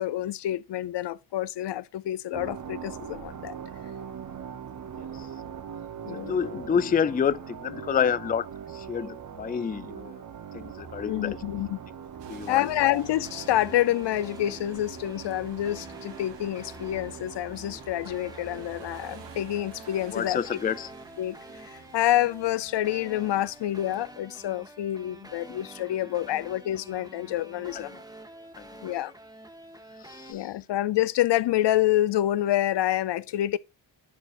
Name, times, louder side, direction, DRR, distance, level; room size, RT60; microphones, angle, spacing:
voice 1, 0.0-3.6 6.0-6.4 11.1-11.8 12.5-20.4 21.2-21.4 21.7-28.0 28.8-29.1 30.3-33.6, left 13 dB, 70° left, 0.6 m, -27 dB
sound 1, 2.3-20.1, right 7 dB, 45° right, 0.9 m, -42 dB
voice 2, 6.3-8.5 8.7-10.2 10.5-11.4 12.3-12.6 20.1-20.9 27.7-28.0 28.6-28.9 30.0-30.5, left 7 dB, 20° left, 0.4 m, -29 dB
sound 2, 12.2-24.6, right 8 dB, 70° right, 1.3 m, -53 dB
sound 3, 13.0-30.3, right 1 dB, 10° right, 1.4 m, -47 dB
11.0 x 4.6 x 2.5 m
cardioid pair, 80°, 44 cm